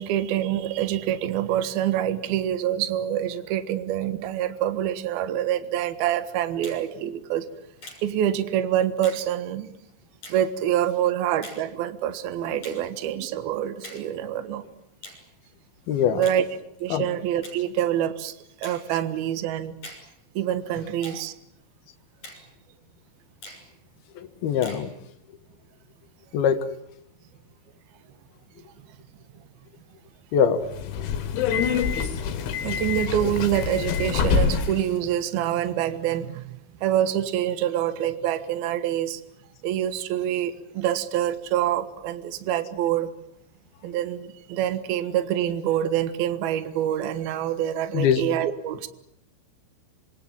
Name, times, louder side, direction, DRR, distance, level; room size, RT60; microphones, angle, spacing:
voice 1, 0.0-7.5 8.0-9.7 10.3-14.6 16.1-16.5 16.8-19.8 20.3-21.3 31.9-32.4 32.6-39.2 39.6-43.1 43.8-48.9, right 11 dB, 65° right, 12 dB, 3.0 m, -26 dB
Finger snapping, 6.6-6.9 7.8-8.0 9.0-9.3 10.2-10.4 11.4-11.6 12.6-12.8 13.8-14.1 15.0-15.2 16.2-16.4 17.4-17.6 18.6-18.8 19.8-20.1 21.0-21.2 22.2-22.4 23.4-23.7 24.6-24.9, left 2 dB, 40° left, 7.5 m, -42 dB
voice 2, 12.5-12.8 15.9-16.3 16.9-17.1 24.2-24.9 26.3-26.6 30.3-30.6 47.9-48.2, left 8 dB, 65° left, 9 dB, 3.1 m, -23 dB
Subway metro underground, 30.7-34.9, left 6 dB, 80° left, 4.4 m, -25 dB
26.5 x 25.0 x 7.7 m, 0.75 s
omnidirectional pair, 5.4 m